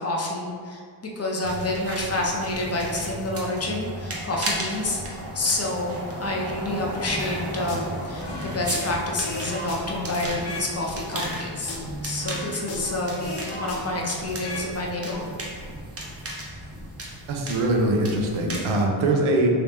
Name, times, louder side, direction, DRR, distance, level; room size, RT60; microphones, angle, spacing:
voice 1, 0.0-11.7 12.0-15.3, left 2 dB, 35° left, -1 dB, 0.5 m, -28 dB
sound 1, 1.4-18.8, right 1 dB, 30° right, 0.6 m, -35 dB
sound 2, 7.2-7.9 8.2-10.7 11.1-12.9 13.2-14.7 15.0-15.2, left 2 dB, 70° left, 0.8 m, -36 dB
voice 2, 17.3-19.5, right 2 dB, 85° right, 1 dB, 0.7 m, -22 dB
3.2 x 2.9 x 3.3 m, 2.1 s
wide cardioid pair, 135°, 47 cm